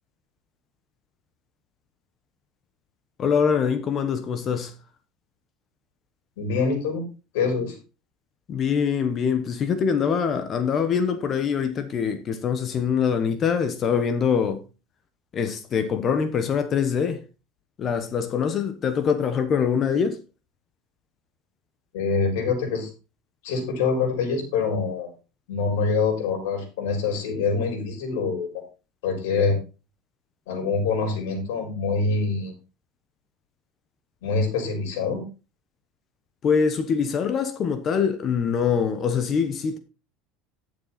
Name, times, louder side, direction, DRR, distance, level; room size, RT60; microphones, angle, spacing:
voice 1, 3.2-4.7 8.5-14.6 15.3-17.2 17.8-20.2 36.4-39.8, left 6 dB, 30° left, 1.2 m, -24 dB
voice 2, 6.4-7.0 7.3-7.8 21.9-22.9 23.4-25.1 25.5-28.5 29.0-29.6 30.5-32.5 34.2-35.3, left 4 dB, 90° left, 4.5 m, -25 dB
11.5 x 6.9 x 4.2 m
cardioid pair, 155°, 0 cm